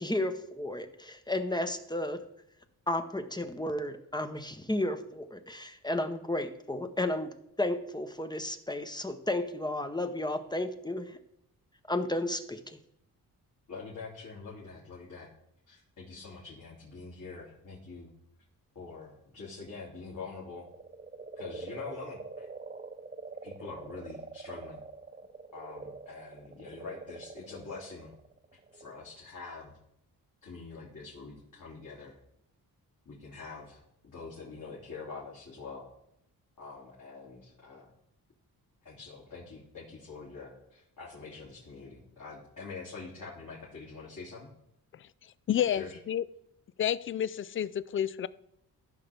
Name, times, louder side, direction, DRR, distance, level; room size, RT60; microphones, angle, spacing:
voice 1, 0.0-2.3 2.9-7.3 7.6-11.2 11.9-12.8, left 1 dB, 10° left, 0.8 m, -33 dB
voice 2, 13.7-15.3 15.7-18.1 18.7-20.7 21.4-22.5 23.4-24.8 25.5-28.1 28.7-29.7 30.4-32.2 33.1-35.8 36.6-37.9 38.8-44.5 45.7-45.9, left 4 dB, 55° left, 2.7 m, -45 dB
sound 1, 20.4-29.1, right 4 dB, 25° right, 0.7 m, -45 dB
voice 3, 45.5-46.2 46.8-48.3, left 10 dB, 35° left, 0.4 m, -30 dB
14.5 x 5.7 x 3.5 m
cardioid pair, 75°, 37 cm